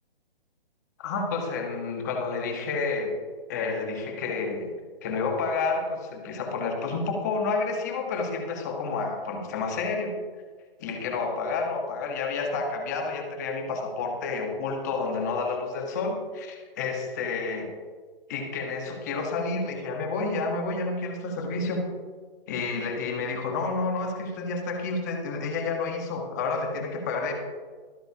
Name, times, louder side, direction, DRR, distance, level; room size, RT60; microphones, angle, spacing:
voice 1, 1.0-3.1 3.5-4.7 5.0-10.2 10.8-17.7 18.3-21.8 22.5-27.3, left 4 dB, 20° left, 3 dB, 1.3 m, -30 dB
23.5 x 9.0 x 2.9 m, 1.5 s
hypercardioid pair, 170°, 30 cm